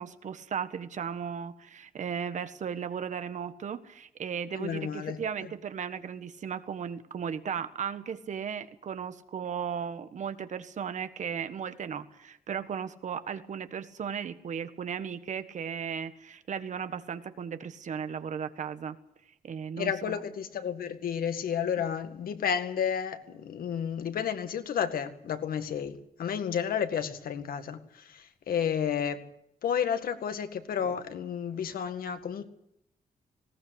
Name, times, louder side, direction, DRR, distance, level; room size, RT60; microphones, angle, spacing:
voice 1, 0.0-19.0 19.4-20.2 21.8-21.9, right 7 dB, 55° right, 1.5 m, -36 dB
voice 2, 4.5-5.2 19.8-29.3 29.6-32.4, left 8 dB, 90° left, 2.0 m, -31 dB
19.5 x 19.0 x 8.1 m
wide cardioid pair, 160°, 15 cm